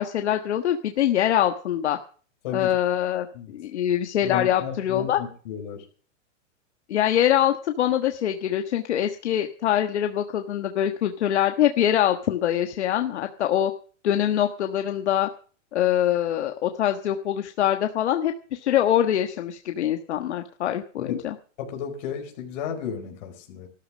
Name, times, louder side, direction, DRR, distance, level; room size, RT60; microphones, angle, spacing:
voice 1, 0.0-2.0 2.5-3.3 3.5-5.2 6.9-13.7 14.0-15.3 15.7-21.3, left 11 dB, 65° left, 6 dB, 1.5 m, -24 dB
voice 2, 4.2-5.8 21.0-21.2 21.6-23.7, left 8 dB, 35° left, 3 dB, 4.6 m, -33 dB
13.5 x 13.5 x 6.2 m, 0.41 s
supercardioid pair, 175°, 37 cm